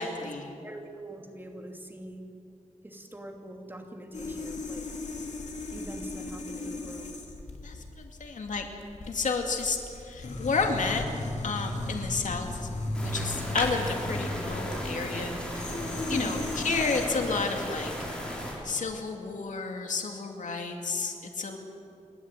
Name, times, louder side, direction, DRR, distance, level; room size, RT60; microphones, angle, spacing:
voice 1, 0.0-0.5 7.6-8.7 9.1-9.8 10.0-11.0 11.4-12.7 13.0-15.3 16.1-17.9 18.6-21.6, left 4 dB, 85° left, 3 dB, 2.5 m, -31 dB
voice 2, 0.6-2.3 2.8-5.0 5.7-7.2 16.1-16.5, right 1 dB, 15° right, 2 dB, 2.6 m, -42 dB
sound 1, 4.1-17.1, left 2 dB, 70° left, 3.0 m, -36 dB
sound 2, 12.9-18.5, equal, 5° left, 6.6 m, -35 dB
29.0 x 13.0 x 9.0 m, 2.6 s
wide cardioid pair, 100°, 13 cm